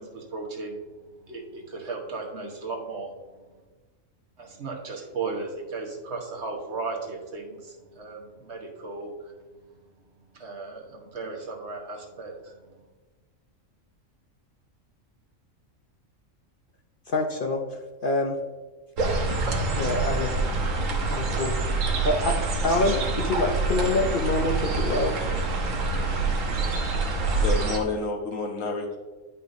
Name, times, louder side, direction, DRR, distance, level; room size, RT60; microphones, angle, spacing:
voice 1, 0.0-3.6 4.4-12.9, right 3 dB, 60° right, 0 dB, 1.5 m, -36 dB
voice 2, 17.1-18.4 19.7-20.4 21.1-22.3 22.6-25.1, left 2 dB, 50° left, 3 dB, 0.7 m, -26 dB
sound 1, 19.0-27.8, right 3 dB, 80° right, 1.4 m, -26 dB
voice 3, 27.4-29.0, left 3 dB, 80° left, 2 dB, 1.6 m, -29 dB
10.5 x 5.6 x 2.6 m, 1.3 s
omnidirectional pair, 1.3 m